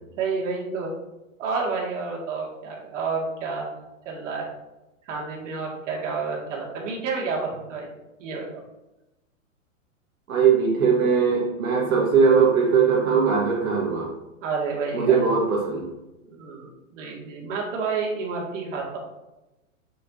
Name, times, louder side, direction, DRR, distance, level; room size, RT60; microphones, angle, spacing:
voice 1, 0.2-0.9 1.4-3.7 4.1-4.5 5.1-7.9 8.2-8.6 14.4-15.2 16.4-19.0, right 4 dB, 65° right, -2 dB, 2.3 m, -29 dB
voice 2, 10.3-14.1 14.9-15.9, right 6 dB, 85° right, -3 dB, 1.7 m, -20 dB
6.9 x 6.4 x 2.8 m, 0.99 s
hypercardioid pair, 130°, 41 cm